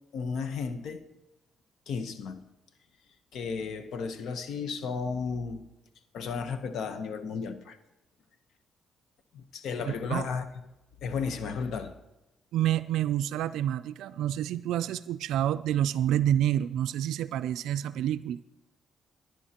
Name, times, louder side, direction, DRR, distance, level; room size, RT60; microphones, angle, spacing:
voice 1, 0.1-1.0 1.9-2.4 3.3-5.6 6.1-7.8 9.3-10.4 11.0-11.9, left 5 dB, 70° left, 9 dB, 1.0 m, -33 dB
voice 2, 9.8-10.3 12.5-18.4, right 11 dB, 85° right, 11 dB, 0.3 m, -28 dB
18.5 x 10.5 x 2.9 m, 0.98 s
cardioid pair, 90°, 0 cm